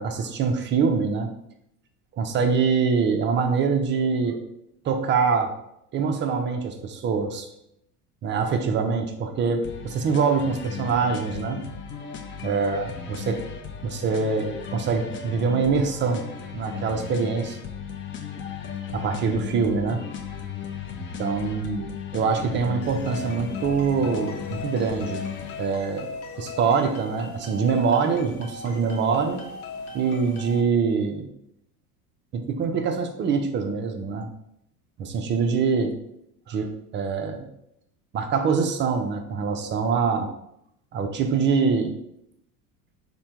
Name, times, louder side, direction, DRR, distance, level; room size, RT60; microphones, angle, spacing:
voice 1, 0.0-1.3 2.1-4.4 4.8-5.5 5.9-7.5 8.2-11.6 12.4-13.4 13.8-16.2 16.5-17.6 18.9-20.0 21.0-21.9 22.1-25.2 25.6-29.4 29.9-31.3 32.3-34.3 35.0-35.9 36.5-37.5 38.1-40.3 40.9-42.0, right 5 dB, 25° right, 6 dB, 0.4 m, -24 dB
sound 1, 9.6-25.6, left 7 dB, 30° left, 0.5 m, -36 dB
sound 2, 22.8-30.6, left 3 dB, 65° left, 0.9 m, -38 dB
3.3 x 2.2 x 4.2 m, 0.78 s
hypercardioid pair, 80°, 44 cm